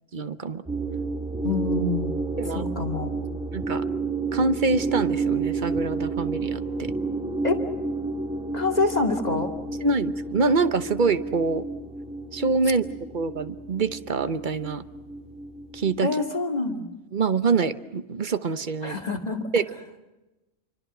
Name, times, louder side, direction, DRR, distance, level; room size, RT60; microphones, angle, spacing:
voice 1, 0.1-0.6 2.4-2.6 3.5-3.8 4.3-6.9 9.8-11.7 12.3-14.8 15.7-16.1 17.1-19.0 19.5-19.6, right 4 dB, 40° right, 12 dB, 1.0 m, -25 dB
sound 1, 0.7-16.0, right 3 dB, 5° right, 2.0 m, -31 dB
voice 2, 1.4-2.1 2.4-3.1 7.4-7.6 8.5-9.5 16.0-16.9 18.8-19.5, left 3 dB, 30° left, 4 dB, 2.3 m, -26 dB
27.5 x 25.0 x 6.1 m, 1.0 s
omnidirectional pair, 1.4 m